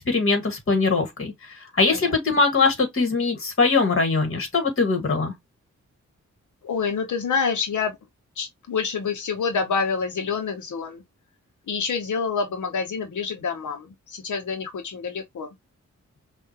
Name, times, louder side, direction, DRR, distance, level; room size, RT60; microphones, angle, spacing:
voice 1, 0.0-5.3, left 4 dB, 45° left, 1.9 m, -22 dB
voice 2, 6.6-8.0 8.4-11.0 11.7-15.5, left 5 dB, 90° left, 0.9 m, -27 dB
5.7 x 2.5 x 2.9 m
wide cardioid pair, 85°, 29 cm